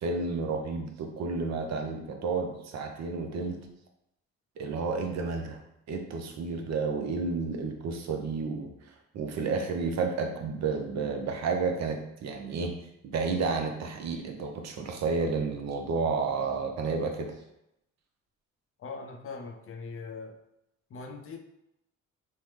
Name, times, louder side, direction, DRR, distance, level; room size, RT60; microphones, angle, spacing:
voice 1, 0.0-3.6 4.6-5.6 5.9-8.7 9.1-12.7 13.0-17.3, right 4 dB, 60° right, 4 dB, 0.6 m, -31 dB
voice 2, 18.8-20.4 20.9-21.4, left 4 dB, 45° left, 4 dB, 0.5 m, -41 dB
3.3 x 2.0 x 3.1 m, 0.82 s
cardioid pair, 90°, 30 cm